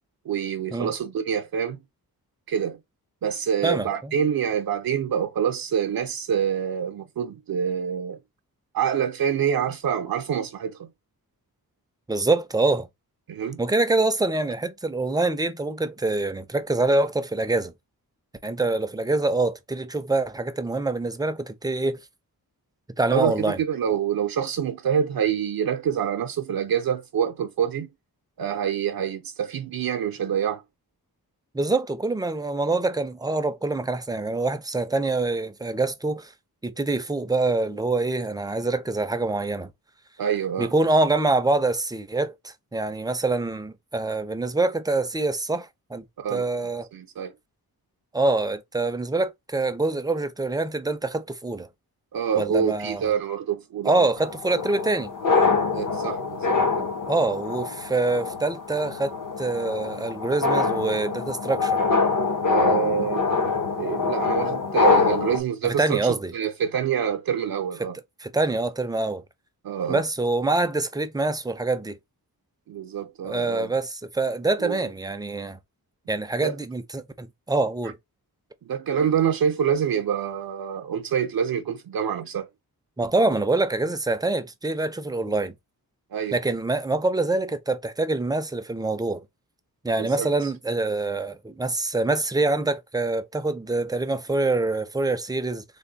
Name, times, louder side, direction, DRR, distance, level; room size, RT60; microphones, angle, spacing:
voice 1, 0.3-1.8 2.5-2.8 3.2-8.2 8.7-10.9 13.3-13.6 23.1-27.9 28.4-30.6 40.2-40.7 46.2-46.4 46.9-47.3 52.1-54.1 55.7-56.9 62.4-63.2 63.8-68.0 69.6-70.0 72.7-73.7 74.6-74.8 76.4-76.6 78.6-82.5 86.1-86.4 90.0-90.5, right 8 dB, 70° right, 0.5 m, -26 dB
voice 2, 3.6-4.2 12.1-12.9 13.6-17.7 18.4-22.0 23.0-23.6 31.5-36.3 36.6-39.7 40.6-46.0 46.3-46.9 48.1-51.7 52.4-53.1 53.8-55.1 57.1-61.8 65.6-66.3 68.2-69.2 69.9-72.0 73.2-75.6 76.1-78.0 83.0-85.5 86.3-89.2 89.8-95.6, right 2 dB, 10° right, 0.4 m, -25 dB
sound 1, 54.2-65.4, left 4 dB, 55° left, 0.8 m, -24 dB
3.4 x 2.1 x 3.9 m
wide cardioid pair, 145°, 37 cm